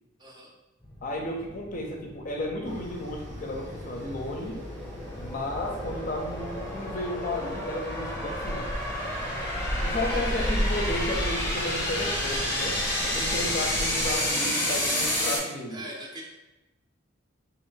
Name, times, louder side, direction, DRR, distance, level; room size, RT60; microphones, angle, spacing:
voice 1, 0.2-0.5 10.1-10.5 15.7-16.2, right 1 dB, 20° right, -2 dB, 0.6 m, -41 dB
sound 1, 0.8-15.4, left 1 dB, 10° left, 0.8 m, -31 dB
voice 2, 1.0-4.6 5.2-8.7 9.8-15.8, left 1 dB, 40° left, 0 dB, 0.5 m, -33 dB
sound 2, 2.6-14.3, equal, 80° right, 1.1 m, -35 dB
3.4 x 2.6 x 3.8 m, 0.99 s
head